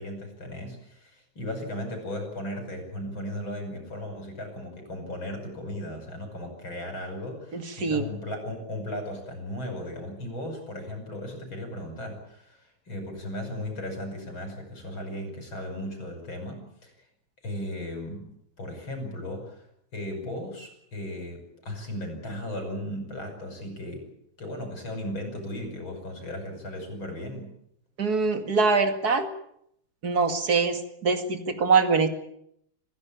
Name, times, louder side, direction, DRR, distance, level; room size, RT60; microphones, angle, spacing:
voice 1, 0.0-16.9 17.4-18.3 18.6-19.6 19.9-24.1 24.4-27.5, left 1 dB, 85° left, 5 dB, 6.5 m, -36 dB
voice 2, 7.5-8.1 28.0-29.3 30.0-32.1, right 4 dB, 50° right, 7 dB, 2.7 m, -23 dB
26.5 x 16.0 x 8.6 m, 0.72 s
omnidirectional pair, 2.1 m